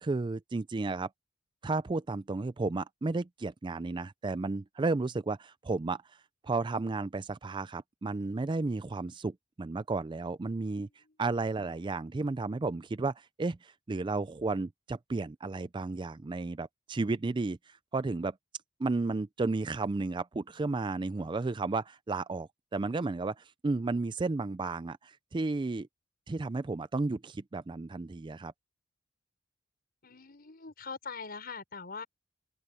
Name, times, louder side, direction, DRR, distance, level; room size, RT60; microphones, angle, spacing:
voice 1, 0.0-1.1 1.6-6.0 6.4-10.9 11.2-18.4 18.8-25.9 26.3-28.5, right 3 dB, 25° right, 0.4 m, -33 dB
voice 2, 30.0-32.0, left 4 dB, 50° left, 6.0 m, -42 dB
head